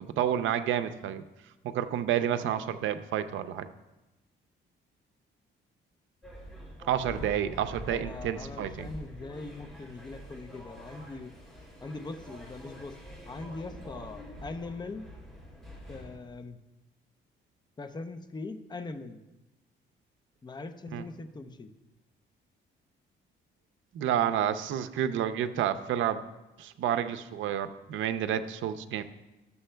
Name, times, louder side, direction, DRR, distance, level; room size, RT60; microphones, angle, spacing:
voice 1, 0.2-1.2 1.6-3.7 6.8-8.9 20.9-21.0 23.9-26.2 26.6-29.0, right 10 dB, 75° right, 11 dB, 0.5 m, -29 dB
sound 1, 6.2-16.2, equal, ahead, 2.9 m, -46 dB
voice 2, 7.9-11.3 11.8-13.0 13.3-15.1 15.9-16.6 17.8-19.2 20.4-21.7, left 3 dB, 20° left, 8 dB, 0.6 m, -41 dB
12.5 x 6.9 x 2.2 m, 1.0 s
cardioid pair, 90°, 20 cm